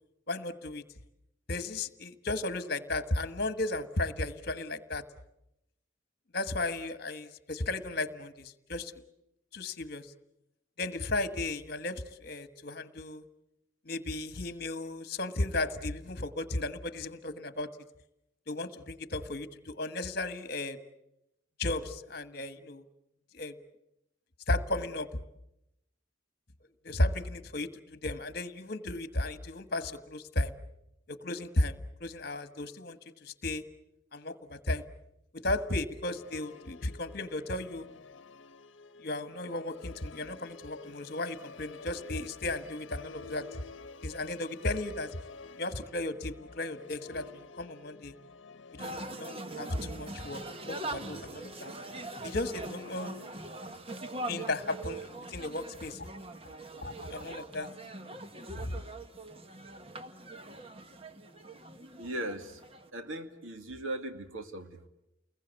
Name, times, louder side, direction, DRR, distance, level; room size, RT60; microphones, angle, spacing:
voice 1, 0.3-0.8 1.5-5.0 6.3-9.0 9.5-10.1 10.8-13.2 13.8-17.7 18.5-20.8 21.6-22.8 23.3-23.6 24.5-25.1 26.8-30.5 31.1-33.6 34.1-34.8 35.4-37.9 39.0-43.6 44.0-45.2 45.6-48.1 48.7-51.7 52.2-53.1 54.3-56.1 56.8-57.7 58.6-58.8, left 2 dB, 50° left, 11 dB, 1.5 m, -35 dB
Musical instrument, 36.1-53.8, left 4 dB, 65° left, 1.0 m, -51 dB
sound 1, 48.8-62.9, right 2 dB, 30° right, 1.2 m, -42 dB
voice 2, 62.0-62.6 62.9-64.9, right 1 dB, 85° right, 7 dB, 2.4 m, -38 dB
30.0 x 21.5 x 8.2 m, 0.85 s
head